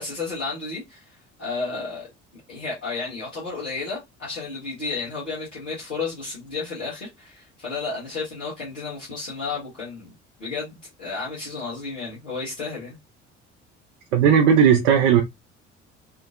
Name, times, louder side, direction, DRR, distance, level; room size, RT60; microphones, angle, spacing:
voice 1, 0.0-2.1 2.5-10.1 10.4-13.0, left 4 dB, 85° left, 1.0 m, -32 dB
voice 2, 14.1-15.2, right 8 dB, 65° right, 0.6 m, -16 dB
2.8 x 2.4 x 2.5 m
figure-of-eight pair, 55°, 37 cm